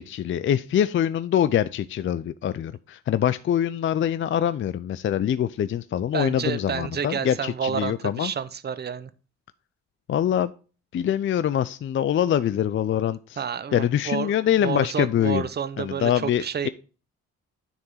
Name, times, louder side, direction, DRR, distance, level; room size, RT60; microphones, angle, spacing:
voice 1, 0.0-8.3 10.1-10.5 10.9-13.4 13.7-15.5 15.8-16.7, left 10 dB, 40° left, 0.4 m, -24 dB
voice 2, 6.1-9.1 13.4-16.7, right 7 dB, 35° right, 0.7 m, -30 dB
9.6 x 3.6 x 5.6 m
cardioid pair, 90°, 30 cm